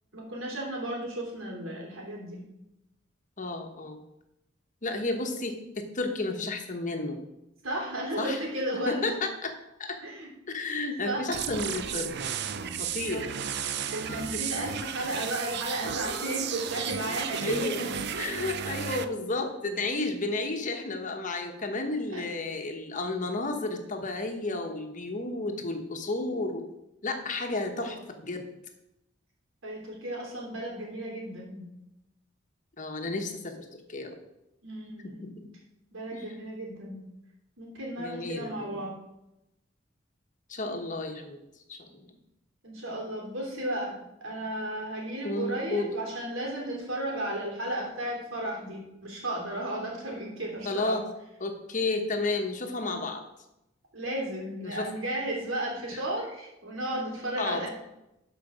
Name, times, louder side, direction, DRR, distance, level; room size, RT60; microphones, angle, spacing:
voice 1, 0.1-2.5 7.6-9.1 10.0-10.3 10.6-10.8 11.0-11.3 13.1-13.2 13.9-18.3 22.1-22.3 27.7-28.0 29.6-31.7 34.6-35.3 35.9-37.1 37.6-39.0 42.6-51.0 53.9-57.7, right 1 dB, 85° right, -1 dB, 3.3 m, -34 dB
voice 2, 3.4-4.0 4.8-7.2 8.2-8.4 8.9-9.5 9.8-10.0 10.5-12.1 12.8-13.3 14.3-14.4 17.4-17.8 18.2-26.6 27.0-28.0 28.2-28.4 32.8-34.1 35.2-35.5 36.1-36.2 38.0-38.8 40.5-41.4 41.7-42.1 45.2-45.9 50.6-51.0 51.4-53.2 54.6-54.9 55.9-56.0 57.4-57.6, left 2 dB, 40° left, 4 dB, 1.2 m, -32 dB
sound 1, 11.3-19.1, right 7 dB, 55° right, 0.6 m, -34 dB
12.5 x 5.1 x 5.0 m, 0.90 s
head